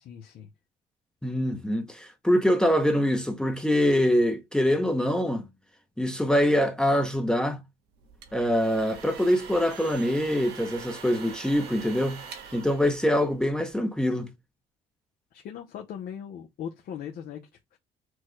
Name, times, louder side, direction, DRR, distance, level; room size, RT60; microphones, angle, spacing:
voice 1, 0.1-0.5 15.3-17.4 17.7-17.8, left 9 dB, 60° left, 0.8 m, -39 dB
voice 2, 1.2-5.4 6.0-7.6 8.3-12.2 12.5-14.3, equal, 5° left, 0.7 m, -24 dB
sound 1, 8.0-13.7, right 6 dB, 80° right, 1.2 m, -44 dB
6.2 x 2.3 x 3.1 m
cardioid pair, 110°, 17 cm